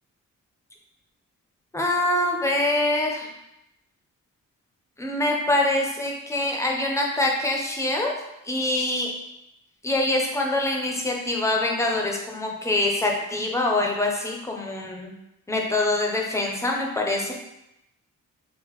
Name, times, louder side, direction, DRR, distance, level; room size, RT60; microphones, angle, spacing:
voice 1, 1.7-3.3 5.0-8.1 8.5-9.1 9.8-15.1 15.5-17.3, left 2 dB, 10° left, 0 dB, 0.5 m, -24 dB
3.6 x 2.1 x 3.0 m, 0.88 s
wide cardioid pair, 110°, 33 cm